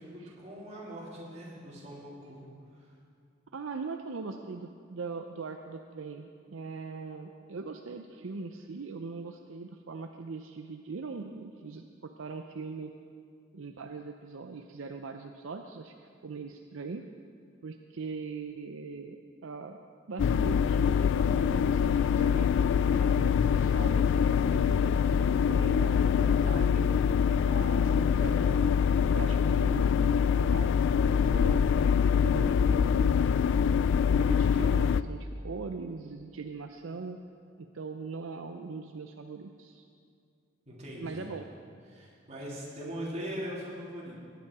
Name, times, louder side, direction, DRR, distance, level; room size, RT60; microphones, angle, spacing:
voice 1, 0.0-2.4 2.7-2.9 40.7-41.3 41.9-44.2, equal, 35° right, -6 dB, 3.4 m, -41 dB
voice 2, 3.5-12.9 13.5-15.9 16.2-17.0 17.6-19.8 20.1-22.5 22.9-24.8 25.1-27.0 27.4-28.7 29.1-29.9 30.3-30.7 31.0-31.6 32.1-33.4 34.1-37.2 37.6-39.9 41.0-41.5, right 4 dB, 70° right, 5 dB, 0.6 m, -41 dB
sound 1, 20.2-35.0, left 7 dB, 65° left, 0.3 m, -24 dB
18.5 x 9.3 x 4.8 m, 2.3 s
head